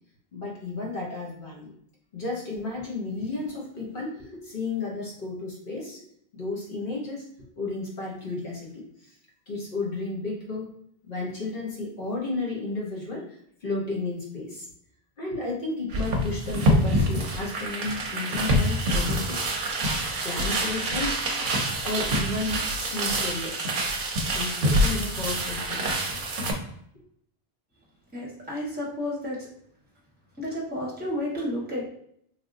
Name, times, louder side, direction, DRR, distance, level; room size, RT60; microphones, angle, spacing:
voice 1, 0.3-1.7 2.1-6.0 6.3-7.2 7.6-9.2 9.5-10.7 11.0-13.3 13.6-14.7 15.2-19.6 20.2-21.3 21.8-23.8 24.3-26.1, left 3 dB, 60° left, -4 dB, 1.2 m, -33 dB
sound 1, 15.9-26.5, equal, 55° right, 0.7 m, -26 dB
voice 2, 28.1-29.5 30.4-31.9, left 1 dB, 10° right, -4 dB, 1.1 m, -31 dB
3.4 x 2.6 x 2.6 m, 0.69 s
omnidirectional pair, 1.1 m